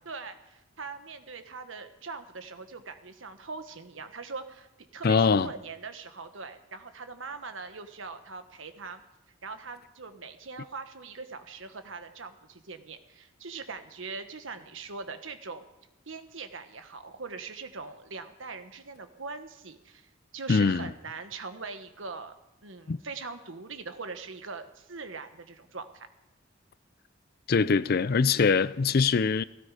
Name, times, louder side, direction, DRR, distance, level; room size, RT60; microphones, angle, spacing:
voice 1, 0.0-4.7 4.9-9.0 9.4-15.6 16.1-22.3 22.6-26.1, right 4 dB, 90° right, 1.4 m, -41 dB
voice 2, 5.0-5.5 20.5-20.9 22.9-23.0 27.5-29.4, left 5 dB, 50° left, 0.5 m, -23 dB
17.0 x 16.5 x 5.0 m
head